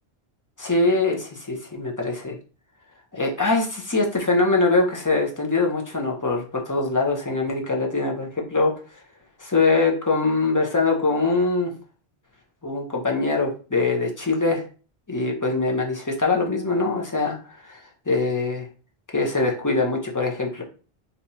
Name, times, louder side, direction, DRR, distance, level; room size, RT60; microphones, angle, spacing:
voice 1, 0.6-2.4 3.1-8.7 9.4-11.7 12.6-14.6 15.1-17.4 17.6-18.7 19.1-20.6, left 3 dB, 25° left, 0 dB, 0.5 m, -23 dB
2.7 x 2.4 x 4.1 m, 0.37 s
omnidirectional pair, 1.0 m